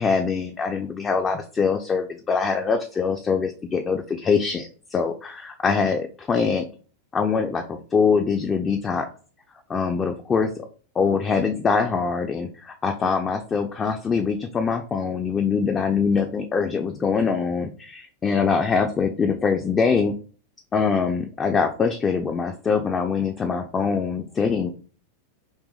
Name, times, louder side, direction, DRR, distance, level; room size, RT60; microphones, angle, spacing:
voice 1, 0.0-6.6 7.1-9.1 9.7-10.7 11.0-20.1 20.7-24.7, left 5 dB, 20° left, 4 dB, 0.3 m, -23 dB
2.7 x 2.6 x 3.6 m, 0.40 s
figure-of-eight pair, 90°, 0 cm